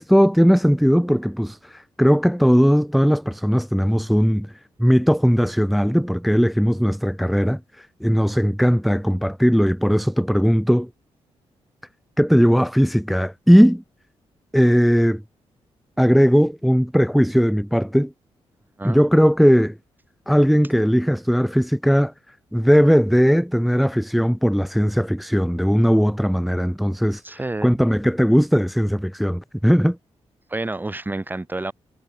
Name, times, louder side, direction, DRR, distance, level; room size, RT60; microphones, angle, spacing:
voice 1, 0.0-4.5 4.8-10.9 12.2-13.8 14.5-15.2 16.0-18.1 18.8-19.7 20.3-22.1 22.5-30.0, equal, ahead, 0.6 m, -18 dB
voice 2, 27.2-27.8 30.5-31.7, right 2 dB, 15° right, 3.6 m, -29 dB
cardioid pair, 85°, 11 cm